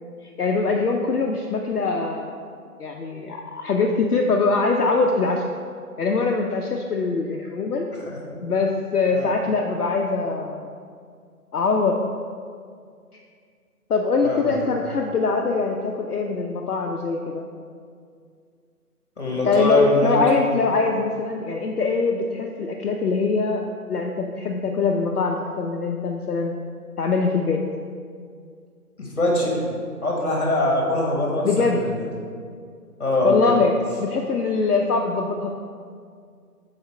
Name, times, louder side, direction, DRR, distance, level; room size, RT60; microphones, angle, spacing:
voice 1, 0.2-2.4 2.8-5.4 6.0-7.9 8.4-10.7 11.5-12.0 13.9-17.5 19.4-26.5 27.0-27.6 31.4-31.8 33.2-35.5, left 4 dB, 70° left, 1 dB, 0.6 m, -23 dB
voice 2, 14.2-14.5 19.2-20.2 29.0-29.7 30.0-32.1 33.0-33.5, left 1 dB, 45° left, -2 dB, 1.3 m, -23 dB
7.0 x 4.1 x 3.3 m, 2.2 s
figure-of-eight pair, 155°, 47 cm